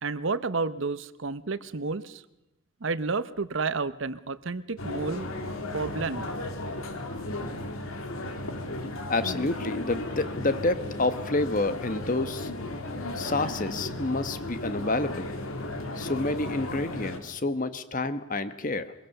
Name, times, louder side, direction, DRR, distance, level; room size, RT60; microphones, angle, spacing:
voice 1, 0.0-2.2 2.8-5.3 5.7-6.3, right 4 dB, 65° right, 14 dB, 0.9 m, -31 dB
sound 1, 4.8-17.2, left 1 dB, 90° left, 2.3 m, -35 dB
voice 2, 9.1-12.5 13.1-15.3 16.0-18.9, left 2 dB, 40° left, 12 dB, 1.1 m, -29 dB
23.0 x 22.0 x 6.7 m, 0.92 s
head